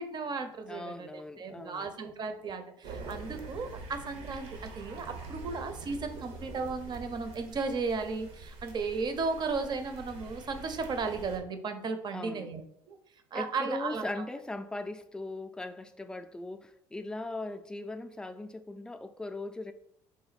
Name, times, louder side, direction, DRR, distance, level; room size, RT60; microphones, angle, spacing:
voice 1, 0.0-12.6 12.9-13.0 13.3-14.1, right 4 dB, 40° right, 0.6 m, -35 dB
voice 2, 0.7-1.9 12.1-12.5 13.3-19.7, left 2 dB, 5° left, 0.4 m, -39 dB
sound 1, 2.8-11.4, right 3 dB, 75° right, 0.8 m, -45 dB
4.2 x 2.6 x 4.0 m
cardioid pair, 95°, 11 cm